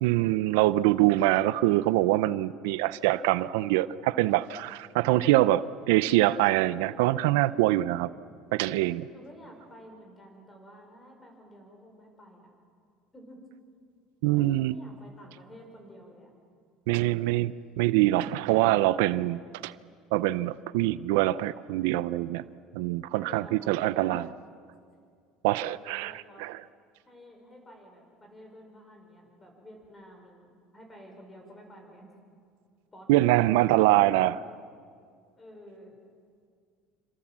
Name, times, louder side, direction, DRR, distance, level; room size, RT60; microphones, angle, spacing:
voice 1, 0.0-8.1 8.5-9.1 14.2-14.8 16.9-19.7 20.1-22.4 22.7-24.3 25.4-26.5 33.1-34.4, right 16 dB, 85° right, 16 dB, 0.6 m, -24 dB
voice 2, 9.1-12.5 13.1-13.4 14.3-16.3 23.1-24.3 25.7-26.4 27.1-32.1 32.9-33.1 35.4-36.0, equal, 15° left, 2 dB, 5.5 m, -51 dB
27.0 x 26.0 x 7.5 m, 2.2 s
cardioid pair, 150°, 0 cm